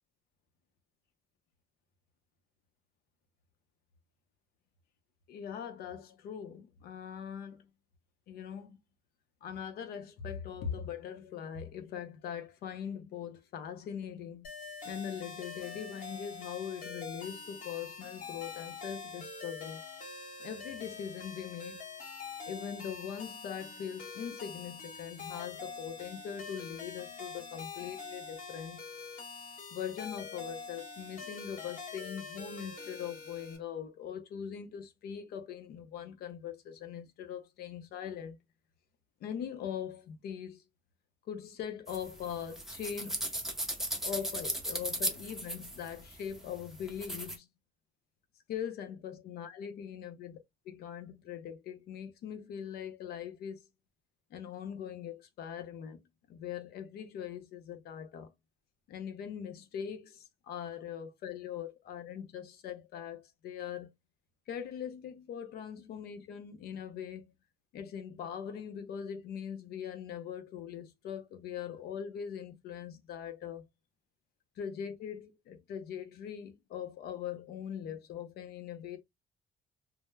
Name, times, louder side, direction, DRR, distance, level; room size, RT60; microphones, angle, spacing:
voice 1, 5.3-7.7 8.3-8.8 9.4-14.5 14.8-19.8 20.4-21.8 22.4-28.8 29.7-38.4 39.2-40.6 41.3-43.2 44.0-47.5 48.5-50.4 50.7-53.7 54.3-56.0 56.3-58.3 58.9-63.9 64.5-67.3 67.7-73.7 74.6-79.0, left 8 dB, 65° left, 0.6 m, -41 dB
sound 1, 14.4-33.6, left 4 dB, 50° left, 1.2 m, -45 dB
sound 2, 41.9-47.4, right 1 dB, ahead, 0.6 m, -37 dB
2.2 x 2.0 x 3.1 m
cardioid pair, 110°, 17 cm